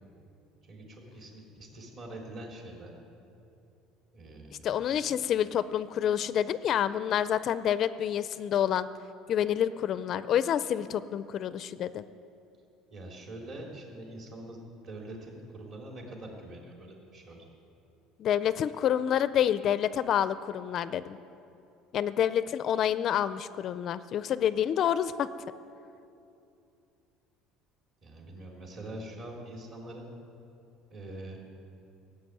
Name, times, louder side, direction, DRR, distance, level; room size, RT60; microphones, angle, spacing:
voice 1, 0.6-2.9 4.1-5.0 12.9-17.5 28.0-30.0 30.9-31.4, right 1 dB, 40° right, -1 dB, 3.5 m, -44 dB
voice 2, 4.6-8.9 9.3-12.0 18.2-21.2 21.9-25.3, left 10 dB, 45° left, 14 dB, 0.4 m, -28 dB
17.0 x 8.0 x 9.4 m, 2.7 s
cardioid pair, 145°, 0 cm